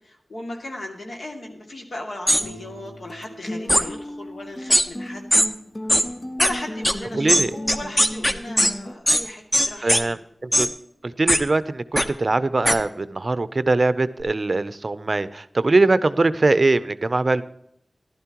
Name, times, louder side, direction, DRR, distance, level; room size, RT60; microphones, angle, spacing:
voice 1, 0.0-5.3 6.4-10.2, left 1 dB, 70° left, 1 dB, 2.3 m, -36 dB
sound 1, 2.3-2.4 3.7-3.8 4.7-4.8 5.3-5.5 5.9-6.0 6.4-6.5 6.8-6.9 7.3-8.7 9.1-9.2 9.5-10.0 10.5-10.7 11.3-11.4 12.0-12.1 12.6-12.8, equal, 10° left, 0.9 m, -18 dB
sound 2, 2.4-8.9, left 1 dB, 40° left, 1.1 m, -35 dB
voice 2, 7.1-7.5 9.8-10.2 10.4-10.7 11.0-17.4, right 3 dB, 50° right, 14 dB, 0.5 m, -21 dB
15.0 x 12.0 x 3.0 m, 0.74 s
wide cardioid pair, 75°, 0 cm